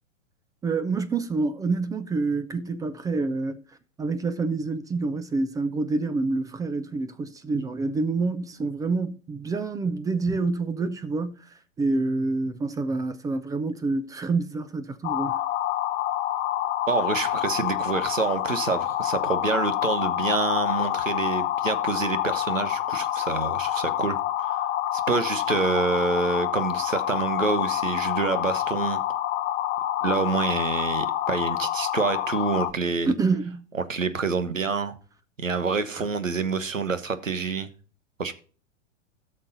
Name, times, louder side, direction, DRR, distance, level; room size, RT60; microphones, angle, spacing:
voice 1, 0.6-3.6 4.0-11.4 11.8-15.4 33.1-33.6 36.0-36.1, right 3 dB, 10° right, 0.4 m, -27 dB
sound 1, 15.0-32.7, left 12 dB, 25° left, 0.7 m, -27 dB
voice 2, 16.9-24.6 24.9-29.0 30.0-33.1 33.7-35.0 35.4-37.7 38.2-38.3, right 4 dB, 90° right, 1.2 m, -27 dB
16.5 x 6.5 x 2.6 m
figure-of-eight pair, 105°, 38 cm